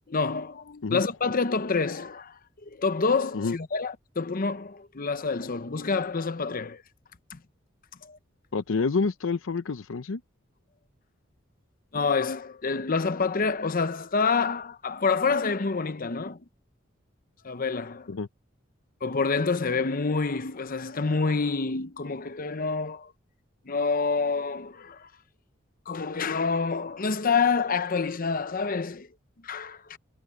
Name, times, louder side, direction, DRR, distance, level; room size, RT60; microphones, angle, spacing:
voice 1, 0.1-2.3 2.7-6.8 7.3-7.4 8.0-8.2 11.9-16.4 17.4-18.1 19.0-23.1 23.7-25.1 25.9-29.1 29.4-30.0, left 4 dB, 45° left, 0.8 m, -27 dB
voice 2, 8.5-10.2 18.1-18.3, left 4 dB, 75° left, 0.6 m, -28 dB
head